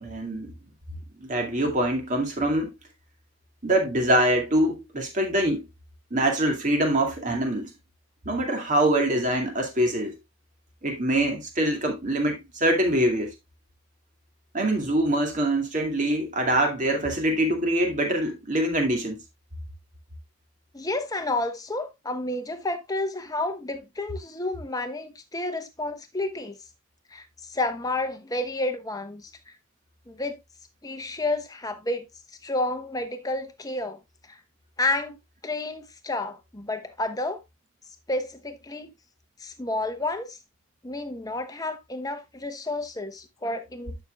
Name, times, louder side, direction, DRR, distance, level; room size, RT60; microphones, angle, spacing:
voice 1, 0.0-0.5 1.2-2.7 3.6-5.7 6.1-7.7 8.2-10.1 10.8-13.3 14.5-19.2, right 1 dB, 35° right, 2.3 m, -24 dB
voice 2, 20.7-26.6 27.1-29.5 30.1-30.4 30.8-32.1 32.4-34.0 34.3-34.4 34.8-35.2 35.4-37.4 38.1-38.9 39.4-40.4 40.8-44.0, left 2 dB, 15° left, 1.0 m, -30 dB
11.5 x 6.3 x 2.3 m
head